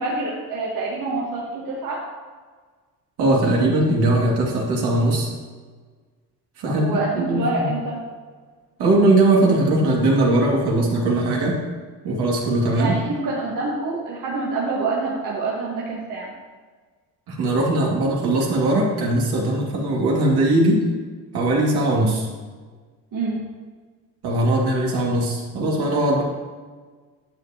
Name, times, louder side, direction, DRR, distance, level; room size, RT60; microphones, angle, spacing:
voice 1, 0.0-2.0 6.6-8.0 12.7-16.3 23.1-23.4, right 3 dB, 50° right, -4 dB, 1.7 m, -26 dB
voice 2, 3.2-5.3 6.6-7.7 8.8-11.6 12.0-13.0 17.3-20.9 21.3-22.3 24.2-26.2, right 2 dB, 70° right, -3 dB, 2.4 m, -20 dB
10.0 x 6.9 x 2.9 m, 1.5 s
cardioid pair, 85°, 40 cm